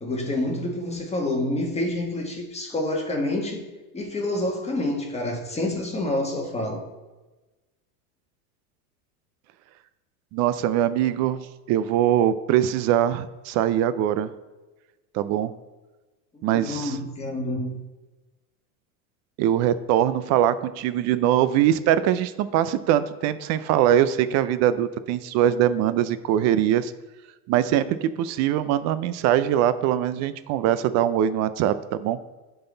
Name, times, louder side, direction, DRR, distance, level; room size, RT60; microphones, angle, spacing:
voice 1, 0.0-3.7 3.9-6.8 16.5-17.8, left 1 dB, 15° left, 1.5 m, -28 dB
voice 2, 10.3-11.4 11.7-14.3 15.1-15.5 16.4-17.0 19.4-26.9 27.5-32.2, right 11 dB, 40° right, 0.4 m, -22 dB
11.0 x 4.0 x 3.9 m
hypercardioid pair, 105°, 44 cm